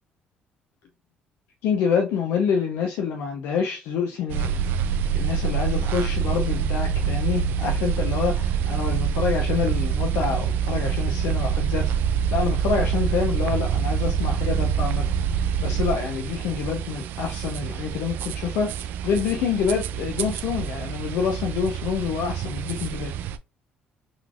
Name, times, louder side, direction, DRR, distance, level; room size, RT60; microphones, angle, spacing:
voice 1, 1.6-4.5 5.1-11.9 12.3-15.1 15.3-23.1, left 6 dB, 85° left, 0.6 m, -27 dB
sound 1, 4.3-23.4, right 8 dB, 75° right, 0.3 m, -26 dB
3.9 x 3.2 x 2.4 m
cardioid pair, 85°, 3 cm